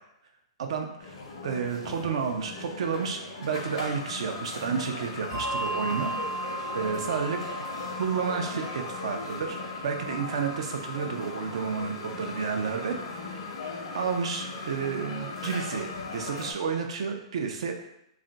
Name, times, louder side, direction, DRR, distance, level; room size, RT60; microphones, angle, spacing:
voice 1, 0.6-1.2 1.4-6.5 6.7-7.6 8.0-13.0 13.9-17.7, right 6 dB, 70° right, 3 dB, 0.5 m, -31 dB
sound 1, 1.0-16.5, left 3 dB, 75° left, 0.7 m, -38 dB
Bell, 5.3-12.2, right 2 dB, 45° right, 0.9 m, -38 dB
2.4 x 2.2 x 3.8 m, 0.80 s
hypercardioid pair, 135°, 3 cm